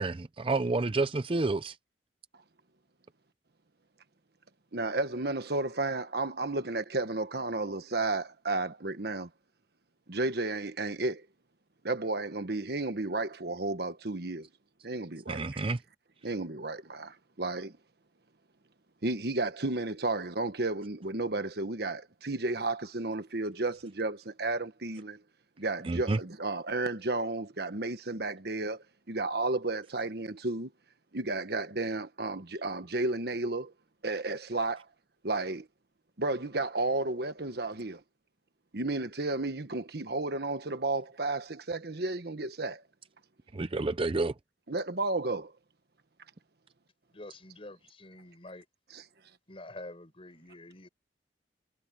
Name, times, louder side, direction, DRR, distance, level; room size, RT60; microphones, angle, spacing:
voice 1, 0.0-1.8 15.3-15.8 25.8-26.2 43.5-44.3, right 3 dB, 30° right, 0.6 m, -29 dB
voice 2, 4.7-9.3 10.1-11.3 11.8-14.5 14.8-15.4 16.2-17.7 19.0-25.2 25.6-30.7 31.1-33.7 34.0-34.8 35.2-35.7 36.2-38.0 38.7-42.8 44.7-45.5 48.9-49.0, right 2 dB, 65° right, 1.4 m, -32 dB
voice 3, 47.1-48.6 49.5-50.9, left 2 dB, 35° left, 4.9 m, -47 dB
head